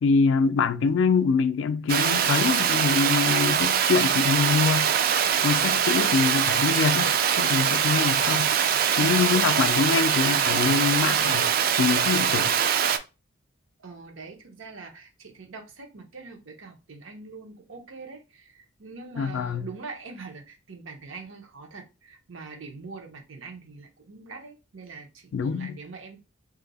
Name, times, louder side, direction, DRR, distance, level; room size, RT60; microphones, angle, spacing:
voice 1, 0.0-4.9 5.4-8.5 9.0-11.5 11.8-12.5 19.2-19.7 25.3-25.8, left 5 dB, 75° left, 0.3 m, -24 dB
Water, 1.9-13.0, right 8 dB, 45° right, 0.3 m, -23 dB
voice 2, 9.0-9.4 13.8-26.2, right 4 dB, 90° right, 0.9 m, -43 dB
2.7 x 2.6 x 4.0 m
head